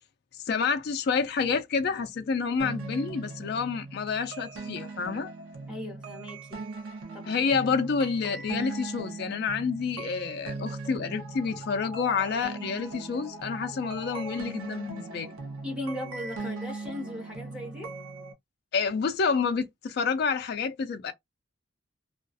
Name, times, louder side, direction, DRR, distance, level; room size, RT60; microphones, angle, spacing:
voice 1, 0.5-5.3 7.3-15.3 18.7-21.1, left 5 dB, 50° left, 0.3 m, -28 dB
sound 1, 2.6-18.3, right 3 dB, 80° right, 0.7 m, -39 dB
voice 2, 5.7-6.6 7.1-7.7 15.6-17.9, left 1 dB, 5° right, 1.0 m, -38 dB
2.3 x 2.3 x 2.5 m
head